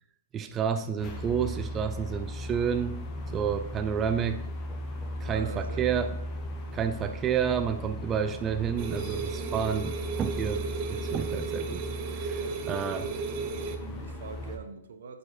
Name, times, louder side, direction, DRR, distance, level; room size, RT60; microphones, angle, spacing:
voice 1, 0.3-3.1 3.3-6.1 6.7-11.9 12.1-12.4 12.7-13.0, right 7 dB, 15° right, 0.3 m, -30 dB
sound 1, 1.0-14.6, left 1 dB, 20° left, 1.0 m, -37 dB
voice 2, 5.2-6.0 12.4-13.2 13.5-15.2, right 5 dB, 75° right, 0.9 m, -44 dB
sound 2, 8.8-13.8, right 5 dB, 35° right, 0.7 m, -35 dB
7.9 x 5.5 x 4.2 m
hypercardioid pair, 160°, 0 cm